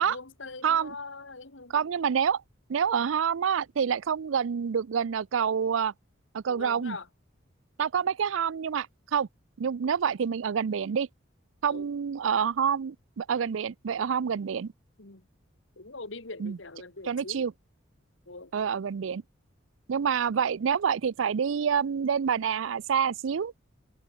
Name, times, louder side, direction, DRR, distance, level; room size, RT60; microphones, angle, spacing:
voice 1, 0.0-1.7 6.5-7.1 11.7-11.9 15.0-15.2 15.8-17.4 18.3-18.5, left 3 dB, 75° left, 2.2 m, -42 dB
voice 2, 0.6-0.9 1.7-2.4 2.7-5.9 6.3-7.0 7.8-8.9 9.1-9.3 9.6-11.1 11.6-14.7 16.4-16.6 17.0-17.5 18.5-19.2 19.9-23.5, right 7 dB, 80° right, 0.4 m, -27 dB
head